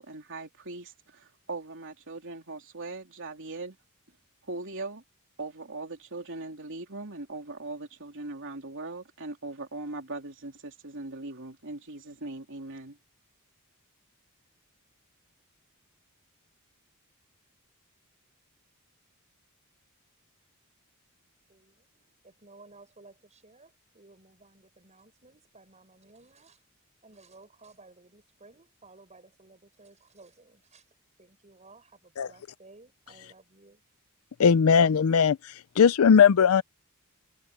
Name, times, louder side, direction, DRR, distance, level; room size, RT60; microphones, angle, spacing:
voice 1, 0.0-3.8 4.5-5.0 5.4-13.0, right 2 dB, 60° right, 3.3 m, -40 dB
voice 2, 21.5-26.6 27.0-33.8, right 3 dB, 30° right, 7.0 m, -56 dB
voice 3, 34.4-36.6, left 6 dB, 70° left, 0.4 m, -19 dB
head